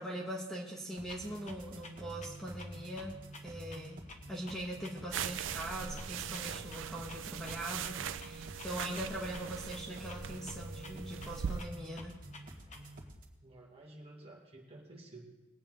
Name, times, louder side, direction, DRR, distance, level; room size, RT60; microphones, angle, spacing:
voice 1, 0.0-4.0 4.3-12.2, right 1 dB, ahead, -3 dB, 1.4 m, -42 dB
sound 1, 0.9-13.3, right 1 dB, 50° right, 1.7 m, -49 dB
Clock, 1.1-13.1, left 3 dB, 40° left, 1.1 m, -55 dB
sound 2, 5.1-11.6, right 8 dB, 85° right, 0.4 m, -41 dB
voice 2, 13.4-15.2, right 2 dB, 30° right, -2 dB, 2.2 m, -52 dB
20.5 x 8.7 x 3.8 m, 1.1 s
head